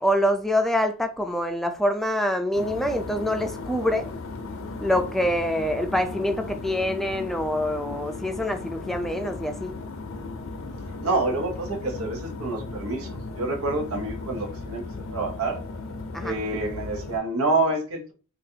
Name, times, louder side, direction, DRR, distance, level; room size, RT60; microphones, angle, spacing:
voice 1, 0.0-4.1 4.8-9.7 16.1-16.4, equal, ahead, 0.4 m, -25 dB
sound 1, 2.5-17.2, left 3 dB, 70° left, 0.5 m, -36 dB
voice 2, 11.0-14.8 15.1-15.6 16.2-18.1, right 2 dB, 85° right, 0.9 m, -27 dB
3.9 x 2.4 x 2.7 m
head